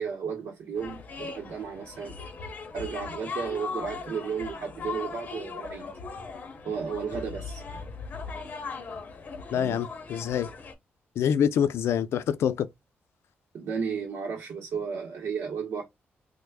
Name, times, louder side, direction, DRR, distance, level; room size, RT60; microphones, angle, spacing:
voice 1, 0.0-2.1 2.7-5.9 6.6-7.6 9.5-9.8 13.5-15.8, right 6 dB, 85° right, 0.7 m, -33 dB
sound 1, 0.8-10.7, left 4 dB, 40° left, 0.7 m, -39 dB
voice 2, 9.5-10.5 11.2-12.7, left 8 dB, 85° left, 0.4 m, -26 dB
3.2 x 2.0 x 3.4 m
wide cardioid pair, 175°, 4 cm